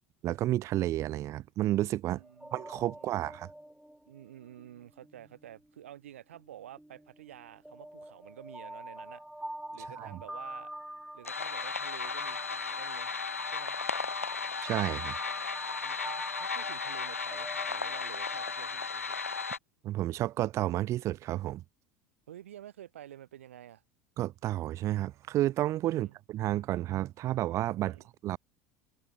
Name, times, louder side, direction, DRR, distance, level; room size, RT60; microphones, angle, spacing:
voice 1, 0.2-2.2 2.5-3.5 10.0-10.1 14.6-15.1 19.8-21.6 24.2-28.0 28.2-28.4, right 14 dB, 40° right, 1.5 m, -31 dB
voice 2, 2.1-2.5 2.9-3.4 4.1-9.2 9.7-10.7 11.1-13.1 13.5-13.8 15.8-19.2 22.3-23.8 25.9-26.2 27.9-28.1, right 11 dB, 70° right, 5.8 m, -50 dB
sound 1, 2.2-5.7 6.3-18.9, right 1 dB, 5° right, 3.6 m, -46 dB
sound 2, 11.2-19.6, left 5 dB, 85° left, 0.6 m, -35 dB
figure-of-eight pair, 75°, 7 cm